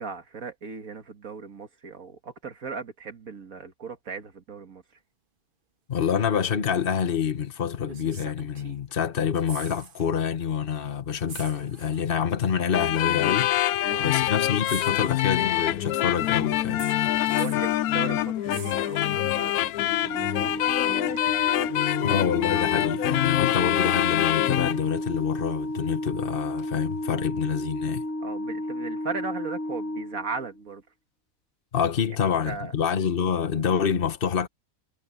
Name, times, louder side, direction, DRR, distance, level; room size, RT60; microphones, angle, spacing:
voice 1, 0.0-4.8 13.9-14.1 17.4-21.3 28.2-30.8 32.5-32.7, right 5 dB, 75° right, 2.1 m, -37 dB
voice 2, 5.9-16.8 22.0-28.0 31.7-34.5, left 7 dB, 40° left, 1.4 m, -27 dB
sound 1, 7.0-7.1 7.9-9.0 9.2-10.1 10.4-10.5 11.3-12.1 13.2-13.3 14.6-15.7 16.8-17.7 18.5-19.4 21.2-21.3, right 6 dB, 40° right, 1.0 m, -44 dB
sound 2, 12.7-24.8, left 14 dB, 90° left, 1.1 m, -25 dB
Organ, 19.8-30.7, left 1 dB, 65° left, 3.1 m, -32 dB
omnidirectional pair, 1.5 m